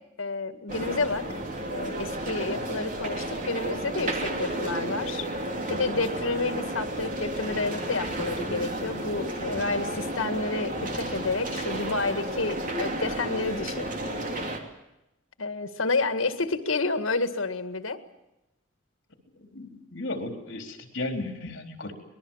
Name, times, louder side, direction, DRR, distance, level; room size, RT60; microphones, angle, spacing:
voice 1, 0.2-5.3 5.7-13.9 15.4-18.0, left 3 dB, 90° left, 9 dB, 1.9 m, -30 dB
sound 1, 0.7-14.6, right 1 dB, 40° right, 3.0 m, -32 dB
voice 2, 19.5-21.9, left 2 dB, 65° left, 5 dB, 4.0 m, -34 dB
25.0 x 20.5 x 7.4 m, 0.91 s
head